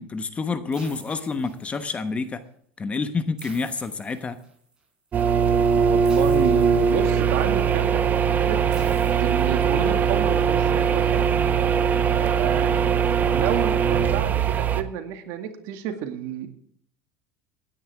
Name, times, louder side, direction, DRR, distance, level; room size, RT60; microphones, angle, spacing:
voice 1, 0.0-2.4 2.8-4.4, left 4 dB, 20° left, 10 dB, 1.2 m, -28 dB
sound 1, 0.7-2.1 3.4-4.7 6.0-7.4 8.7-10.1, right 3 dB, 15° right, 5.3 m, -47 dB
sound 2, 5.1-14.8, right 7 dB, 30° right, 1.0 m, -21 dB
voice 2, 5.7-8.6 9.2-11.2 12.2-12.9 13.3-16.5, right 9 dB, 65° right, 6 dB, 2.2 m, -30 dB
16.0 x 10.0 x 3.6 m, 0.64 s
supercardioid pair, 120°, 6 cm